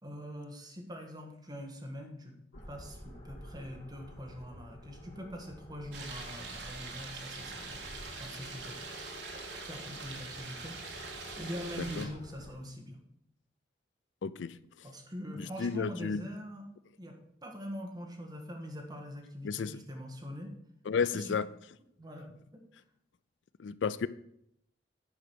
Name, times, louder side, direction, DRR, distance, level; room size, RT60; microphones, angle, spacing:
voice 1, 0.0-2.3 2.7-7.9 8.2-8.8 9.6-13.0 14.8-16.6 17.0-20.5 21.1-21.3 22.0-22.6, equal, 20° right, 2 dB, 1.6 m, -43 dB
sound 1, 2.5-12.5, equal, 50° left, 3.9 m, -50 dB
sound 2, 5.9-12.1, right 4 dB, 65° right, 1.7 m, -44 dB
voice 2, 11.8-12.1 14.2-14.6 15.3-16.2 19.4-19.8 20.9-21.5 23.6-24.1, left 5 dB, 70° left, 16 dB, 0.4 m, -32 dB
9.7 x 5.0 x 6.1 m, 0.74 s
head